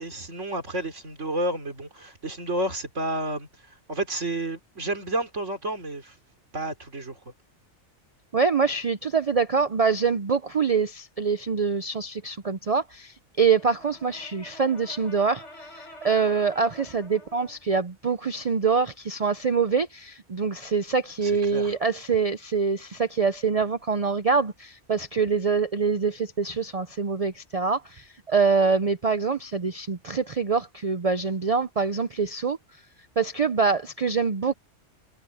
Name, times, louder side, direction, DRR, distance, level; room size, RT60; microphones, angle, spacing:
voice 1, 0.0-6.2 6.5-7.2 21.2-21.7, right 1 dB, 80° right, 3.9 m, -31 dB
voice 2, 8.3-32.6 33.2-34.5, right 5 dB, 40° right, 0.6 m, -25 dB
Brass instrument, 13.5-17.7, left 1 dB, 70° left, 7.2 m, -47 dB
omnidirectional pair, 1.3 m